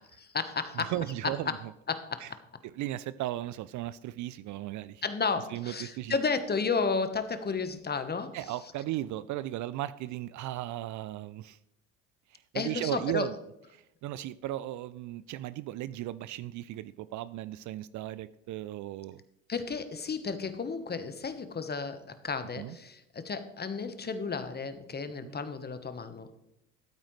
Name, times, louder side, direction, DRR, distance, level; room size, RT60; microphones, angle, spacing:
voice 1, 0.2-0.9 1.9-2.2 5.0-8.4 12.5-13.3 19.5-26.3, left 5 dB, 25° left, 10 dB, 1.2 m, -33 dB
voice 2, 0.8-1.7 2.2-2.3 2.7-5.0 5.5-6.1 8.3-11.6 12.3-13.3 13.7-19.2 22.6-22.8 25.2-25.4, right 14 dB, 50° right, 17 dB, 0.5 m, -36 dB
13.5 x 8.8 x 3.2 m, 0.82 s
hypercardioid pair, 65°, 39 cm